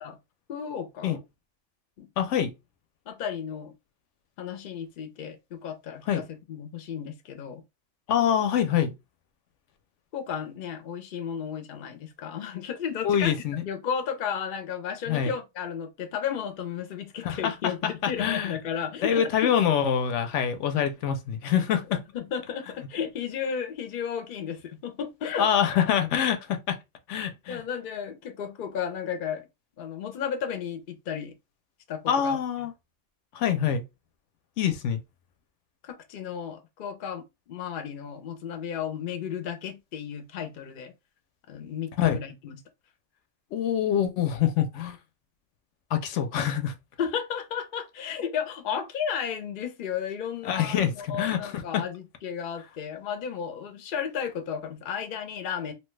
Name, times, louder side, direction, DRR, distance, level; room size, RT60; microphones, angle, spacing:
voice 1, 0.5-1.2 2.0-2.1 3.1-3.7 4.4-7.6 10.1-13.3 13.6-19.5 21.9-25.5 27.5-29.5 29.8-31.3 31.9-32.4 35.8-40.9 41.5-42.6 47.0-55.7, left 7 dB, 55° left, 0.7 m, -33 dB
voice 2, 2.2-2.5 6.1-6.2 8.1-8.9 13.0-13.6 15.1-15.3 17.2-17.7 18.2-18.5 19.0-22.0 25.4-26.8 27.1-27.6 32.1-32.7 33.3-33.8 34.6-35.0 42.0-42.2 43.5-45.0 45.9-46.7 50.4-51.8, left 9 dB, 80° left, 0.9 m, -25 dB
2.9 x 2.2 x 3.1 m
omnidirectional pair, 1.2 m